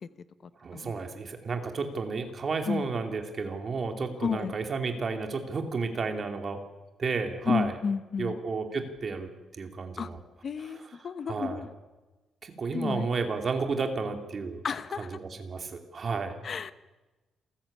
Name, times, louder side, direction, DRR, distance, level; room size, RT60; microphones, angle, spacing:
voice 1, 0.6-6.6 7.0-7.8 8.2-10.2 10.6-11.7 12.4-14.6 15.0-16.4, right 4 dB, 30° right, 5 dB, 2.6 m, -32 dB
voice 2, 4.2-4.5 7.5-8.4 10.0-10.1 10.4-11.7 12.7-13.1 14.6-15.1 16.4-16.7, left 6 dB, 35° left, 13 dB, 1.0 m, -31 dB
28.0 x 14.5 x 8.5 m, 1.2 s
cardioid pair, 175°, 0 cm